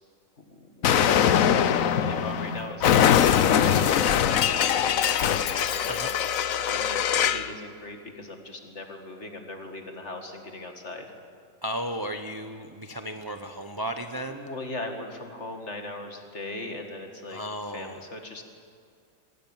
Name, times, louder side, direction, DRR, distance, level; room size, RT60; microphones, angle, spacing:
voice 1, 0.4-6.0 6.4-11.1 14.3-17.4 17.7-18.4, left 2 dB, 40° left, 4 dB, 2.3 m, -39 dB
Explosion, 0.8-7.5, left 9 dB, 60° left, 1.0 m, -22 dB
voice 2, 11.6-14.4 17.3-18.0, equal, 20° right, 6 dB, 0.6 m, -34 dB
24.5 x 18.0 x 7.4 m, 2.3 s
omnidirectional pair, 1.9 m